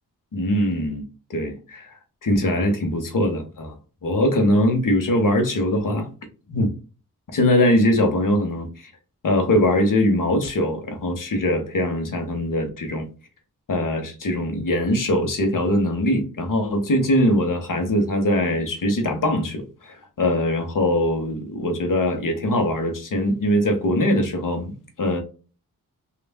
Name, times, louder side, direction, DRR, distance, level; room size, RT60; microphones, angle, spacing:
voice 1, 0.3-1.0 1.3-1.9 2.2-3.7 4.0-6.1 6.5-6.7 7.3-8.9 9.2-13.1 13.7-25.2, left 1 dB, 60° left, 1.0 m, -22 dB
3.2 x 2.4 x 2.3 m
cardioid pair, 45°, 36 cm